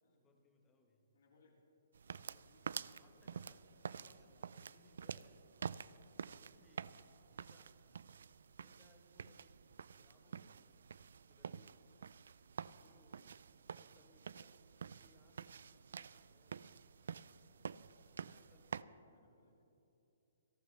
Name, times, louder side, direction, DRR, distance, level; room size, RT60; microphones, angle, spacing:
voice 1, 0.2-1.1 3.0-5.4 6.3-7.7 8.6-9.6 9.9-11.9 12.8-14.6 14.8-16.7 18.2-19.0, left 2 dB, 15° left, 3 dB, 1.2 m, -70 dB
voice 2, 1.1-1.5 2.1-4.4 4.8-5.3 18.7-19.5, left 2 dB, 65° left, -2 dB, 3.9 m, -71 dB
sound 1, 1.9-18.8, right 6 dB, 75° right, 0.3 m, -49 dB
27.5 x 12.0 x 3.3 m, 2.8 s
hypercardioid pair, 170°, 0 cm